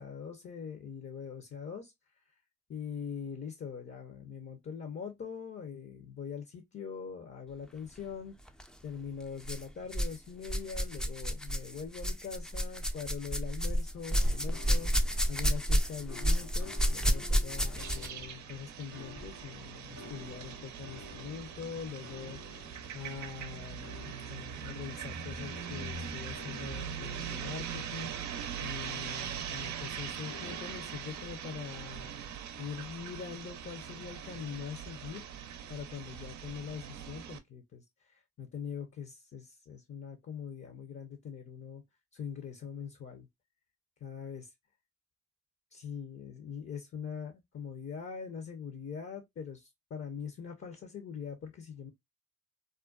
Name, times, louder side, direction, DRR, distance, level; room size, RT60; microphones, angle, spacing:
voice 1, 0.0-1.9 2.7-8.4 8.8-22.6 22.9-28.1 28.6-32.1 32.6-35.2 35.7-41.8 42.1-43.3 44.0-44.5 45.7-51.9, left 7 dB, 40° left, 0.7 m, -43 dB
sound 1, 8.5-8.7 9.4-10.2 10.4-18.2 19.2-19.3 20.1-20.2, equal, ahead, 0.4 m, -30 dB
sound 2, 14.1-15.8 16.1-18.5 18.9-28.9 30.2-32.0, left 4 dB, 80° left, 1.0 m, -53 dB
sound 3, 17.8-37.4, right 8 dB, 65° right, 0.5 m, -41 dB
2.4 x 2.2 x 2.3 m
supercardioid pair, 50°, 31 cm